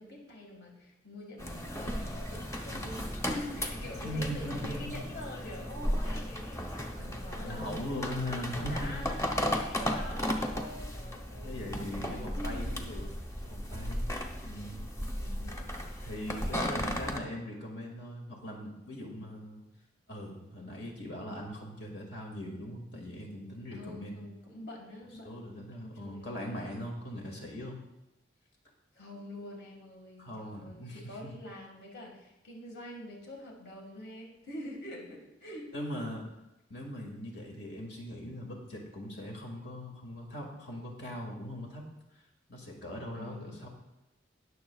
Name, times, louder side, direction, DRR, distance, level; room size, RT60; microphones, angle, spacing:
voice 1, 0.0-7.8 8.5-11.7 12.1-12.9 15.2-15.8 16.3-17.5 23.7-25.5 25.8-26.4 27.4-27.5 28.9-35.7 43.1-43.6, left 1 dB, 60° left, -1 dB, 2.0 m, -45 dB
sound 1, 1.4-17.2, equal, 15° left, 0.8 m, -35 dB
voice 2, 3.8-4.9 7.4-9.1 11.4-13.1 13.4-14.1 14.4-14.9 16.0-19.6 20.1-24.3 25.2-27.8 30.2-31.3 35.7-36.2 36.7-41.8 42.5-43.7, equal, 80° left, 0 dB, 2.2 m, -40 dB
20.0 x 6.8 x 2.4 m, 0.94 s
head